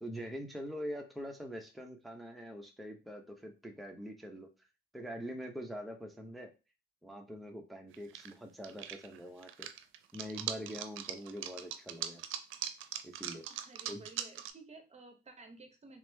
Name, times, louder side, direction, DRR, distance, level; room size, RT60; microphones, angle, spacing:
voice 1, 0.0-4.5 4.9-6.5 7.0-9.7 10.1-12.2 13.0-13.4 13.9-14.1, equal, ahead, 2 dB, 0.7 m, -44 dB
sound 1, 7.9-8.3 8.6-14.5, right 10 dB, 85° right, 0.5 m, -41 dB
voice 2, 13.5-16.0, right 3 dB, 35° right, 6 dB, 0.8 m, -54 dB
3.5 x 2.9 x 3.3 m, 0.29 s
cardioid pair, 90°, 20 cm